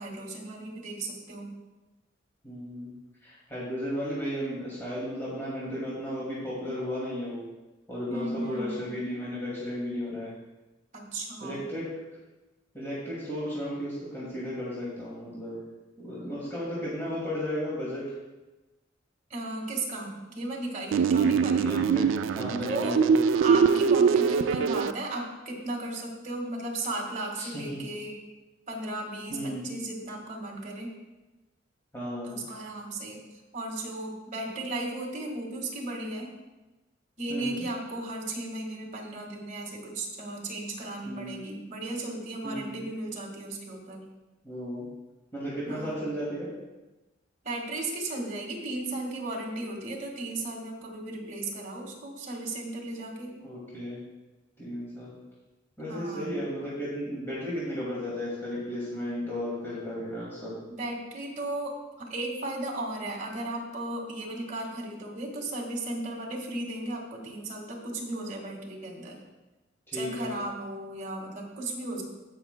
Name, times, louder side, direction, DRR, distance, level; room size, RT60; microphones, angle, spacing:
voice 1, 0.0-1.5 8.1-8.9 10.9-11.6 19.3-21.8 22.6-23.0 23.3-28.2 28.7-30.9 32.2-33.2 33.5-36.3 37.2-44.0 45.7-46.0 47.4-53.3 55.9-56.3 60.8-69.2 69.9-72.0, right 2 dB, 40° right, 0 dB, 1.7 m, -35 dB
voice 2, 2.4-2.9 3.2-7.4 7.9-10.3 11.4-11.9 12.7-15.6 16.0-18.1 21.1-22.0 22.3-23.0 27.4-27.8 29.3-29.7 31.9-32.4 37.3-37.7 41.0-41.3 42.4-42.8 44.4-44.8 45.3-46.5 53.4-54.0 54.6-55.2 55.8-60.5 69.9-70.3, equal, 15° left, -8 dB, 2.2 m, -34 dB
sound 1, 20.9-24.9, right 6 dB, 85° right, 0.3 m, -23 dB
17.0 x 5.9 x 2.2 m, 1.1 s
head